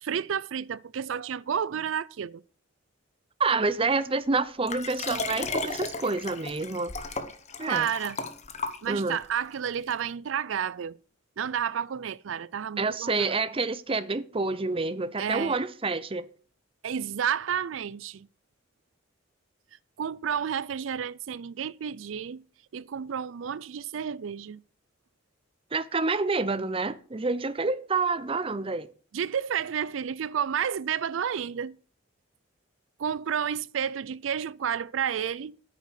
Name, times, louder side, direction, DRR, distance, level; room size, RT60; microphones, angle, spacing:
voice 1, 0.0-2.4 7.7-8.2 8.8-11.0 11.4-13.4 15.2-15.6 16.8-18.3 20.0-22.4 22.7-24.6 29.1-31.8 33.0-35.6, right 8 dB, 80° right, 0.4 m, -31 dB
voice 2, 3.4-6.9 7.6-7.9 8.9-9.2 12.8-16.3 25.7-28.9, right 3 dB, 30° right, 0.7 m, -28 dB
Liquid, 4.7-9.3 9.9-10.0, left 3 dB, 35° left, 1.1 m, -35 dB
9.3 x 6.7 x 8.3 m
head